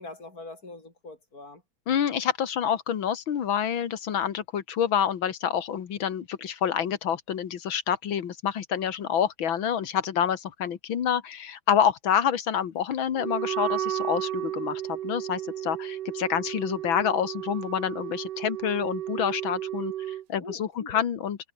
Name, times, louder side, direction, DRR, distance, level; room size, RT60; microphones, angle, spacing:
voice 1, 0.0-1.6 20.4-21.0, left 2 dB, 45° left, 5.7 m, -43 dB
voice 2, 1.9-21.4, left 8 dB, 75° left, 2.3 m, -27 dB
Wind instrument woodwind instrument, 13.2-20.2, right 12 dB, 65° right, 1.3 m, -33 dB
omnidirectional pair, 2.2 m